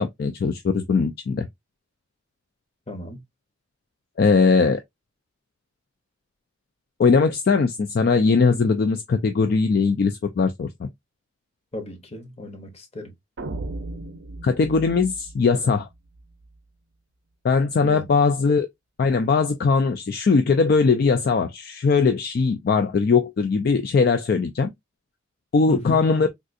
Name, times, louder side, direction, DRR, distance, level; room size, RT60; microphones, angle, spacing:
voice 1, 0.0-1.5 4.2-4.8 7.0-10.9 14.4-15.9 17.4-18.7 19.0-24.7 25.5-26.3, left 4 dB, 50° left, 0.3 m, -20 dB
voice 2, 2.9-3.2 11.7-13.1 17.8-18.0 25.7-26.0, left 1 dB, 30° left, 0.8 m, -35 dB
sound 1, 13.4-16.5, right 2 dB, 65° right, 0.5 m, -36 dB
3.6 x 2.4 x 2.5 m
head